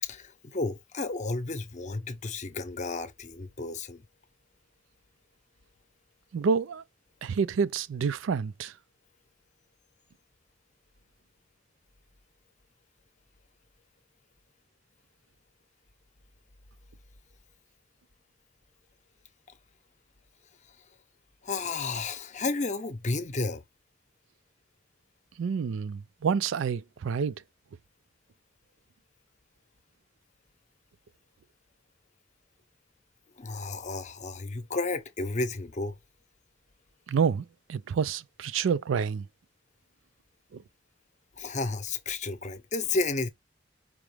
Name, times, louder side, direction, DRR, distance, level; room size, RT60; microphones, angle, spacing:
voice 1, 0.0-4.0 21.4-23.6 33.4-36.0 41.4-43.3, left 3 dB, 40° left, 0.7 m, -32 dB
voice 2, 6.3-6.8 7.2-8.7 25.4-27.3 37.1-39.2 40.5-40.6, right 6 dB, 90° right, 0.4 m, -28 dB
4.9 x 2.9 x 3.3 m
head